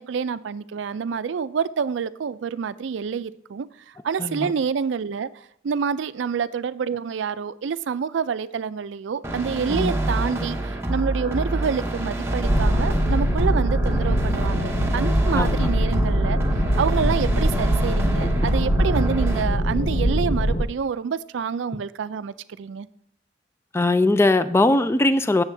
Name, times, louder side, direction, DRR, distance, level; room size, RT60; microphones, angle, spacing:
voice 1, 0.0-16.4 16.8-22.9, right 6 dB, 75° right, 14 dB, 0.4 m, -27 dB
voice 2, 4.2-4.5 9.7-9.9 15.3-15.7 18.2-18.5 23.7-25.4, left 2 dB, 15° left, 12 dB, 0.3 m, -20 dB
sound 1, 9.2-19.4, right 1 dB, 15° right, 0.8 m, -26 dB
sound 2, 12.4-20.6, equal, 45° left, 0.8 m, -23 dB
8.3 x 7.2 x 3.3 m, 0.71 s
head